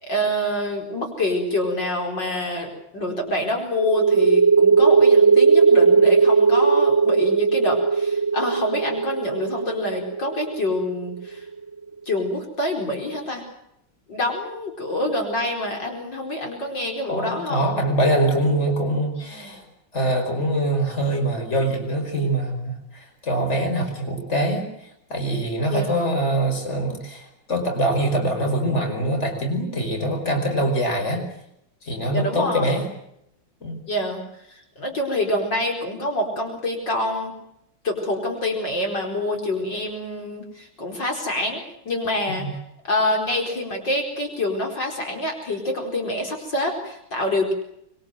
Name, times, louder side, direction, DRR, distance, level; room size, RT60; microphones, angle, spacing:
voice 1, 0.0-11.5 12.1-13.4 14.1-17.7 19.2-19.5 25.7-26.0 32.1-32.7 33.9-34.2 34.5-37.3 37.8-42.5 42.9-47.5, left 1 dB, 60° left, 2 dB, 5.2 m, -26 dB
sound 1, 3.8-11.2, right 5 dB, 15° left, 2.9 m, -17 dB
voice 2, 17.1-19.6 19.9-31.2 31.8-32.9 33.6-33.8 42.3-42.5, right 1 dB, 30° left, 4 dB, 5.3 m, -24 dB
25.5 x 23.0 x 7.9 m, 0.78 s
omnidirectional pair, 2.2 m